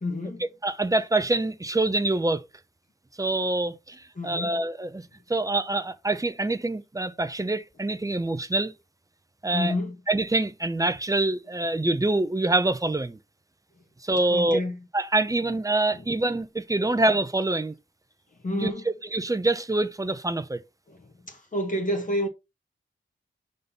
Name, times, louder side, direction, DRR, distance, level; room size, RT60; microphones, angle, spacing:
voice 1, 0.0-0.4 4.2-4.6 9.5-10.0 14.3-14.8 15.9-16.0 18.4-18.8 20.9-21.0 21.2-22.3, left 1 dB, 40° left, 1.4 m, -29 dB
voice 2, 0.6-2.4 3.2-5.0 5.3-8.7 9.4-9.7 10.1-13.2 14.0-14.6 14.9-17.7 18.5-20.6, right 2 dB, 15° right, 0.7 m, -25 dB
5.3 x 3.9 x 5.5 m
wide cardioid pair, 110°, 21 cm